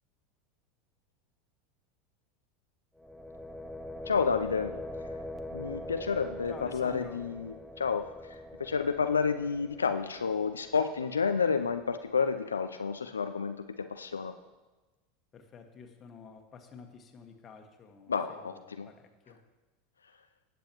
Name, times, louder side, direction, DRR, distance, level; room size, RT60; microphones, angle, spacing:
sound 1, 3.0-12.8, left 1 dB, 5° left, 0.9 m, -44 dB
voice 1, 4.1-4.8 5.5-14.3 18.1-18.9, left 5 dB, 85° left, 8 dB, 0.4 m, -30 dB
voice 2, 6.5-7.2 15.3-19.0 19.3-19.4, left 5 dB, 30° left, 4 dB, 1.5 m, -49 dB
18.5 x 7.0 x 3.1 m, 1.2 s
hypercardioid pair, 85°, 0 cm